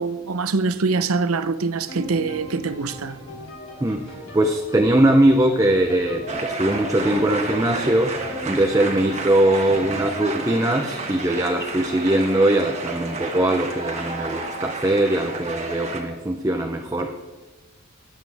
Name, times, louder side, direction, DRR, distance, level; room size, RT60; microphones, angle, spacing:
voice 1, 0.0-3.2, right 4 dB, 80° right, 0.7 m, -24 dB
sound 1, 1.9-14.7, left 1 dB, 65° left, 3.0 m, -41 dB
sound 2, 2.0-10.2, equal, 25° left, 2.4 m, -44 dB
voice 2, 3.8-8.2 8.5-17.2, right 1 dB, 15° right, 0.6 m, -21 dB
sound 3, 6.3-16.0, right 3 dB, 30° right, 1.5 m, -31 dB
21.0 x 8.4 x 3.4 m
head